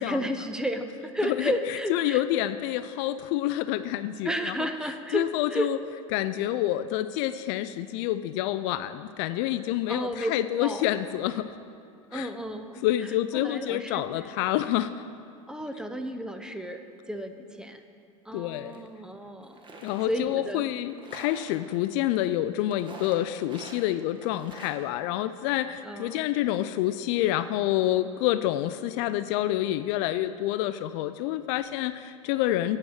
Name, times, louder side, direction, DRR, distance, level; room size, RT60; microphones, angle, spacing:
voice 1, 0.0-2.2 4.2-5.7 9.9-10.3 10.6-10.8 12.1-14.3 15.5-17.8 18.3-20.7 25.8-26.3, equal, 5° right, 7 dB, 0.6 m, -33 dB
voice 2, 1.2-4.6 5.1-5.8 6.1-11.5 12.1-12.3 12.8-14.9 18.3-18.9 19.8-32.8, left 13 dB, 55° left, 12 dB, 0.4 m, -28 dB
sound 1, 18.7-18.8 19.4-20.1 20.9-21.5 22.7-23.8 24.1-24.8, right 2 dB, 25° right, 1.4 m, -46 dB
8.8 x 7.0 x 6.3 m, 2.4 s
hypercardioid pair, 95°, 18 cm